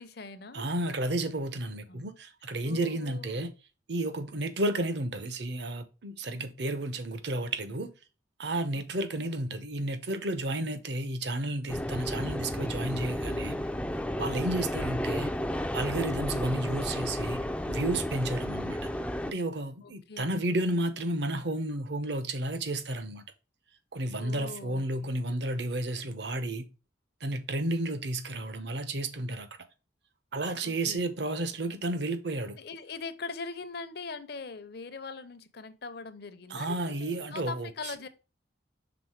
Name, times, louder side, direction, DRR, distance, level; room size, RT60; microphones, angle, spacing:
voice 1, 0.0-0.7 1.9-2.1 2.7-3.5 8.7-8.8 9.2-9.3 19.8-20.4 24.2-24.8 30.6-31.0 32.6-38.1, left 4 dB, 55° left, 0.7 m, -42 dB
voice 2, 0.5-3.5 3.9-7.9 8.4-13.6 14.2-15.3 15.7-18.9 19.2-23.2 23.9-26.7 27.2-29.5 30.3-32.6 36.5-37.9, right 1 dB, 60° right, 0.9 m, -32 dB
sound 1, 11.7-19.3, left 1 dB, 5° left, 0.4 m, -32 dB
6.1 x 3.8 x 4.7 m
head